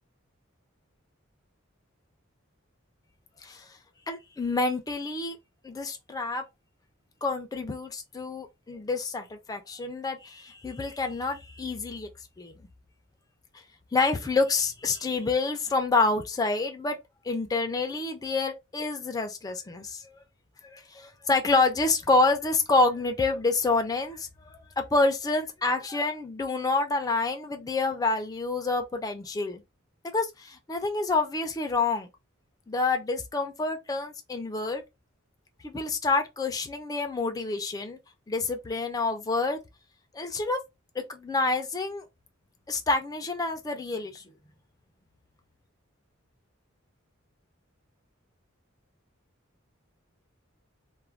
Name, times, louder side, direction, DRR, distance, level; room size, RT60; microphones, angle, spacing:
voice 1, 4.1-5.4 5.6-6.4 7.2-12.1 12.4-12.5 13.9-17.0 17.3-20.2 20.6-29.6 30.1-32.1 32.7-34.8 35.6-38.0 38.3-39.6 40.1-40.6 41.1-42.0 42.7-44.2, left 3 dB, 20° left, 0.4 m, -28 dB
2.4 x 2.0 x 3.1 m
head